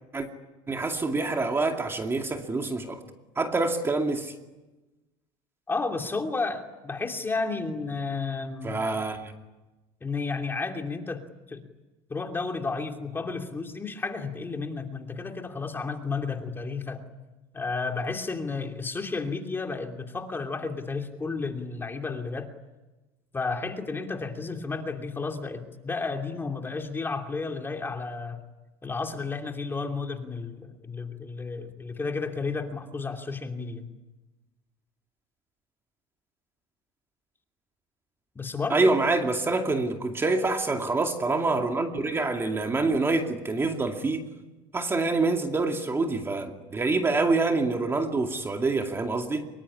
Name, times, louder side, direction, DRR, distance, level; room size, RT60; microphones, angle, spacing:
voice 1, 0.7-3.0 3.4-4.3 8.6-9.3 38.7-44.3 44.7-49.5, right 3 dB, 15° right, 4 dB, 2.4 m, -26 dB
voice 2, 5.7-8.8 10.0-11.7 12.1-17.1 17.5-22.5 23.3-28.4 28.8-33.9 38.3-38.9, left 4 dB, 15° left, 4 dB, 2.8 m, -32 dB
25.0 x 23.5 x 10.0 m, 1.1 s
cardioid pair, 130°, 14 cm